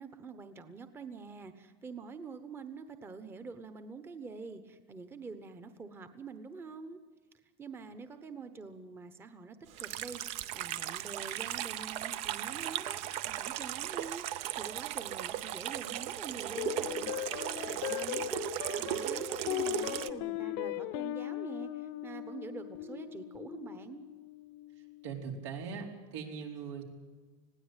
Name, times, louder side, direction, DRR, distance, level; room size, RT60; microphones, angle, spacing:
voice 1, 0.0-7.0 7.6-17.1 17.7-24.0, right 4 dB, 15° right, 10 dB, 1.0 m, -46 dB
Water tap faucet / Sink (filling or washing), 9.7-20.1, right 13 dB, 45° right, 0.7 m, -37 dB
sound 1, 16.6-25.2, left 15 dB, 60° left, 0.9 m, -39 dB
sound 2, 16.8-17.8 19.7-20.8 22.7-23.8, left 7 dB, 90° left, 1.8 m, -46 dB
voice 2, 25.0-26.8, right 6 dB, 90° right, 1 dB, 4.5 m, -40 dB
20.5 x 16.5 x 9.1 m, 1.4 s
supercardioid pair, 150°, 15 cm